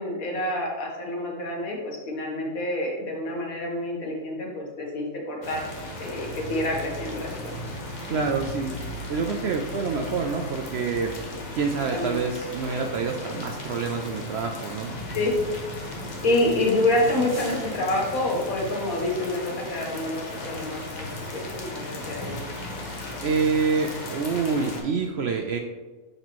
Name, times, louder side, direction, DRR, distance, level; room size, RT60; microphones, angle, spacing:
voice 1, 0.0-5.7 6.0-7.7 11.9-12.2 15.1-15.3 16.2-22.4, left 1 dB, 75° left, 0 dB, 1.7 m, -27 dB
sound 1, 5.4-24.8, left 1 dB, 35° left, 1.0 m, -36 dB
voice 2, 8.1-8.8 9.1-11.1 11.5-14.9 23.2-25.6, right 5 dB, 65° right, 4 dB, 0.6 m, -27 dB
6.6 x 5.5 x 3.0 m, 1.2 s
omnidirectional pair, 1.5 m